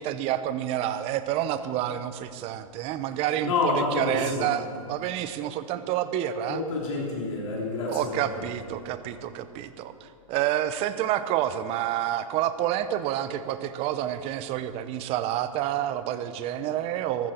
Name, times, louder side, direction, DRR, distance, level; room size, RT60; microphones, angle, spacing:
voice 1, 0.0-6.6 7.9-17.3, right 11 dB, 35° right, 12 dB, 0.8 m, -29 dB
voice 2, 3.4-4.6 6.5-8.3, left 3 dB, 60° left, -3 dB, 3.4 m, -28 dB
14.0 x 13.5 x 4.4 m, 2.2 s
hypercardioid pair, 120°, 18 cm